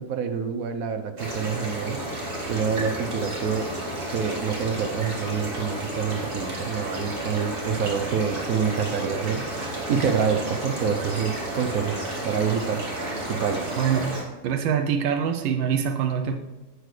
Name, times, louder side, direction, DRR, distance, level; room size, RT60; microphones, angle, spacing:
voice 1, 0.0-3.7 4.1-9.6 9.9-12.8 13.3-13.8, right 6 dB, 60° right, 8 dB, 0.9 m, -27 dB
sound 1, 1.2-14.2, right 1 dB, 30° right, 2.1 m, -32 dB
voice 2, 13.8-14.1 14.4-16.4, right 7 dB, 80° right, 5 dB, 1.4 m, -24 dB
11.0 x 7.9 x 3.3 m, 1.1 s
omnidirectional pair, 2.0 m